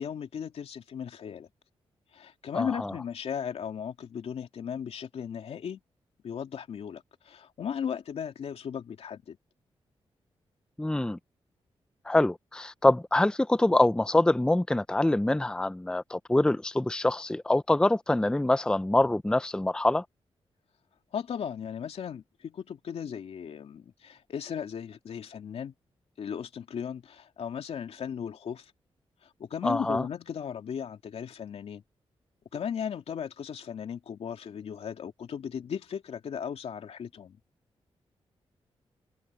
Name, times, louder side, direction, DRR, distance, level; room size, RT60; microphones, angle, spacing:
voice 1, 0.0-1.5 2.1-5.8 6.2-9.4 21.1-25.7 26.2-28.7 29.2-31.8 32.5-37.4, left 7 dB, 75° left, 2.7 m, -36 dB
voice 2, 2.5-2.9 10.8-11.2 12.0-20.1 29.6-30.0, left 1 dB, 10° left, 0.5 m, -25 dB
cardioid pair, 80°, 10 cm